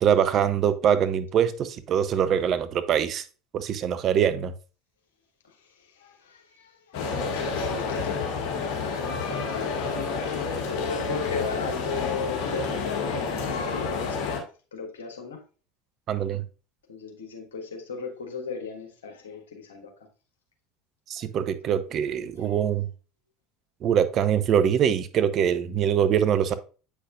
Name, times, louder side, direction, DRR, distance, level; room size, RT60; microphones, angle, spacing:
voice 1, 0.0-3.2 3.5-4.5 16.1-16.4 21.1-22.9 23.8-26.5, right 8 dB, 40° right, 0.7 m, -23 dB
voice 2, 6.0-8.2 10.7-14.4 14.7-15.4 16.9-19.9, left 5 dB, 70° left, 1.5 m, -36 dB
sound 1, 6.9-14.4, left 4 dB, 55° left, 1.9 m, -29 dB
8.3 x 5.7 x 2.4 m
figure-of-eight pair, 70°, 0 cm